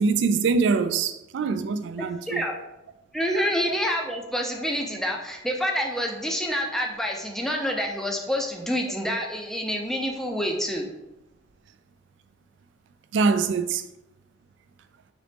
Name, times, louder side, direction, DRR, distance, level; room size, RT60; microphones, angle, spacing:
voice 1, 0.0-2.4 3.3-3.5 13.1-13.8, right 4 dB, 75° right, 0.3 m, -24 dB
voice 2, 3.1-10.9, equal, ahead, 0.5 m, -27 dB
4.1 x 2.9 x 3.4 m
head